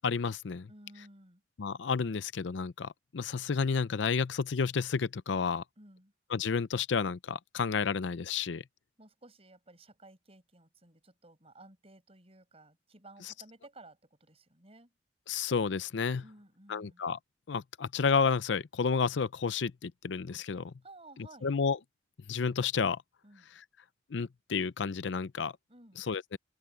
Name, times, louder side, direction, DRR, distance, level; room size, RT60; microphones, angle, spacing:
voice 1, 0.0-0.7 1.6-5.6 6.3-8.6 15.3-16.2 16.7-17.2 17.5-20.7 21.4-21.8 22.3-23.0 24.1-25.5 26.0-26.4, left 5 dB, 75° left, 0.5 m, -31 dB
voice 2, 0.7-1.4 5.8-6.1 9.0-14.9 16.2-17.0 20.8-21.5 23.2-23.5 25.7-26.1, right 2 dB, 35° right, 6.7 m, -55 dB
open air
head